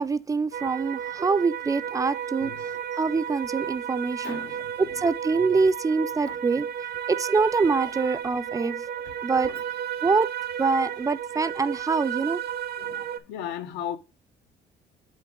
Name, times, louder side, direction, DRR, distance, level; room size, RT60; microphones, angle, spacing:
voice 1, 0.0-2.5 3.0-4.4 4.8-6.7 7.1-8.8 9.2-9.5 10.0-10.3 10.6-12.4, right 4 dB, 20° right, 0.3 m, -25 dB
sound 1, 0.5-13.2, right 9 dB, 70° right, 0.5 m, -33 dB
voice 2, 4.2-4.7 6.3-6.4 9.0-9.1 9.5-9.6 12.8-14.0, left 10 dB, 85° left, 0.8 m, -36 dB
7.6 x 4.1 x 3.6 m
cardioid pair, 110°, 17 cm